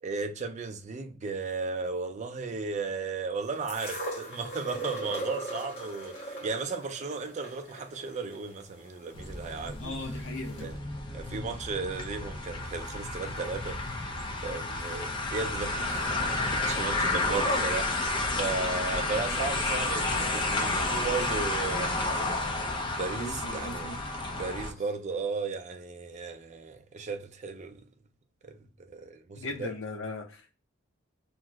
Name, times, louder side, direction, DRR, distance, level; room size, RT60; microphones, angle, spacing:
voice 1, 0.0-9.9 10.6-10.8 11.1-14.1 14.4-22.2 22.9-23.9 24.3-27.8 28.4-29.7, right 4 dB, 35° right, 0.4 m, -35 dB
sound 1, 3.7-9.7 10.6-10.7, right 1 dB, 55° left, 1.1 m, -39 dB
sound 2, 9.1-24.7, left 2 dB, 25° left, 0.5 m, -31 dB
voice 2, 9.8-10.7 23.1-24.0 29.3-30.5, left 2 dB, 75° left, 0.7 m, -38 dB
2.9 x 2.0 x 3.3 m
head